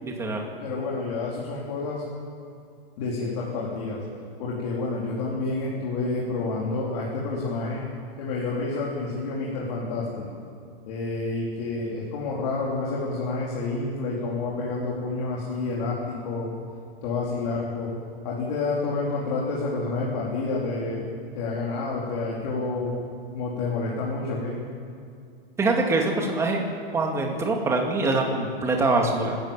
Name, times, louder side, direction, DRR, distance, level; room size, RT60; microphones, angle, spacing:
voice 1, 0.0-0.5 25.6-26.6 26.9-29.4, right 3 dB, 10° right, 1 dB, 2.3 m, -24 dB
voice 2, 0.6-2.0 3.0-4.0 4.4-7.8 8.2-10.3 10.9-16.5 17.0-17.9 18.2-21.1 21.3-22.9 23.3-24.6, left 3 dB, 40° left, -5 dB, 4.2 m, -29 dB
24.5 x 13.5 x 9.0 m, 2.4 s
hypercardioid pair, 160°, 30 cm